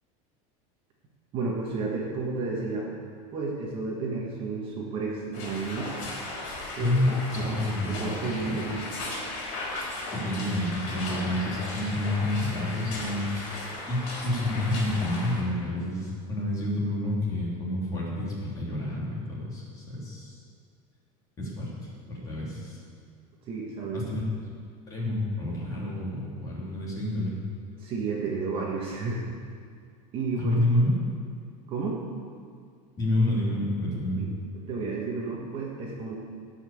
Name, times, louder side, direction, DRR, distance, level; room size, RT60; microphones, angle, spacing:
voice 1, 1.3-3.0 3.3-5.9 6.7-8.7 23.5-24.0 27.8-29.2 30.1-30.6 31.7-32.0 34.1-34.3 34.5-36.2, right 4 dB, 30° right, -2 dB, 1.6 m, -32 dB
sound 1, 5.3-15.4, left 2 dB, 55° left, 3.9 m, -36 dB
voice 2, 6.8-8.6 10.1-20.4 21.4-21.7 22.1-22.8 23.9-24.2 24.9-27.4 30.4-30.9 33.0-34.2, left 1 dB, 20° left, -5 dB, 3.1 m, -29 dB
16.5 x 5.9 x 7.1 m, 2.2 s
supercardioid pair, 175°, 17 cm